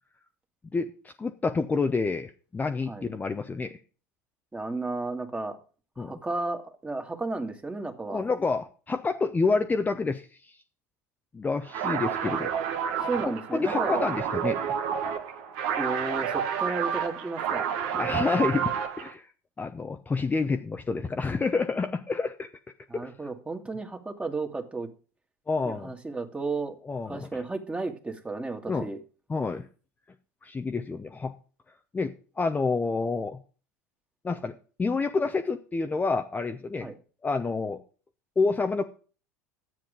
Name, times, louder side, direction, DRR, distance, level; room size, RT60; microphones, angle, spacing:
voice 1, 1.2-3.8 6.0-6.2 8.1-10.5 11.3-12.5 13.3-14.7 17.9-19.3 19.6-22.5 23.0-23.1 25.5-25.9 26.9-27.3 28.7-28.9 29.3-29.7 30.4-31.3 31.9-33.4 34.2-36.9 37.2-37.8 38.4-38.8, left 4 dB, 20° left, 5 dB, 0.8 m, -28 dB
voice 2, 4.5-5.6 6.0-8.2 12.2-12.3 13.1-14.0 15.7-17.7 22.9-24.9 25.6-26.8 27.1-29.0 36.8-36.9, right 3 dB, 15° right, 5 dB, 2.0 m, -33 dB
sound 1, 11.7-19.1, right 8 dB, 65° right, 1.5 m, -29 dB
10.5 x 7.7 x 5.2 m, 0.37 s
hypercardioid pair, 75°, 9 cm